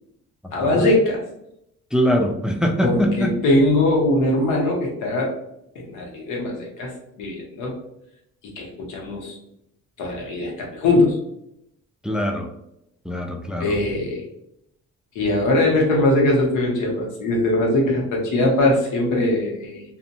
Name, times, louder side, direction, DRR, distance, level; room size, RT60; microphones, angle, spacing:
voice 1, 0.5-1.2 2.8-5.3 5.7-7.8 8.4-9.4 10.0-11.2 13.6-14.3 15.1-19.8, left 1 dB, 85° left, -1 dB, 0.9 m, -21 dB
voice 2, 1.9-3.3 12.0-12.5 13.1-13.7, equal, 5° right, 3 dB, 0.3 m, -22 dB
2.7 x 2.1 x 2.6 m, 0.79 s
cardioid pair, 90°, 30 cm